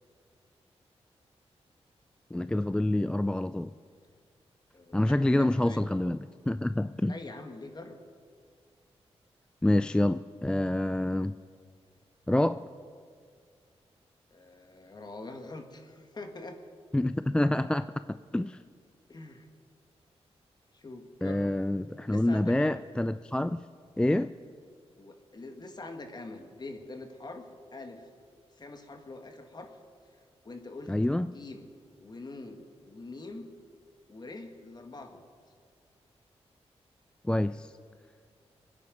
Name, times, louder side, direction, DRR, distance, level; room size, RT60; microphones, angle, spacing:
voice 1, 2.3-3.7 4.9-7.1 9.6-11.4 12.3-12.7 16.9-18.6 21.2-23.6 24.0-24.3 30.9-31.3 37.2-37.7, left 1 dB, 10° left, 13 dB, 0.3 m, -27 dB
voice 2, 4.7-5.8 7.0-8.0 14.3-16.6 19.1-19.5 20.7-21.5 22.0-22.8 25.0-28.1 28.6-29.7 30.1-30.9 31.2-31.7 32.0-33.5 34.1-35.2, left 2 dB, 40° left, 5 dB, 1.8 m, -44 dB
24.0 x 9.8 x 5.3 m, 2.1 s
cardioid pair, 80°, 11 cm